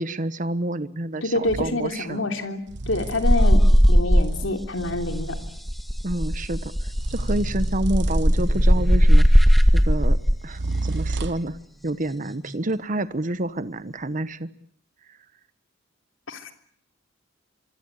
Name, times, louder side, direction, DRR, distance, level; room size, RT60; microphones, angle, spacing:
voice 1, 0.0-2.3 6.0-10.2 10.4-11.6 11.8-14.5, right 1 dB, 40° right, 13 dB, 1.1 m, -29 dB
voice 2, 1.2-5.4 16.3-16.5, left 2 dB, 70° left, 6 dB, 3.4 m, -27 dB
sound 1, 1.5-1.8 2.7-5.7 6.9-9.1 10.5-11.6, right 2 dB, 60° right, 1.1 m, -32 dB
sound 2, 3.2-4.7 4.9-10.4 12.1-12.5, equal, ahead, 2.0 m, -18 dB
26.0 x 24.0 x 8.4 m, 0.62 s
head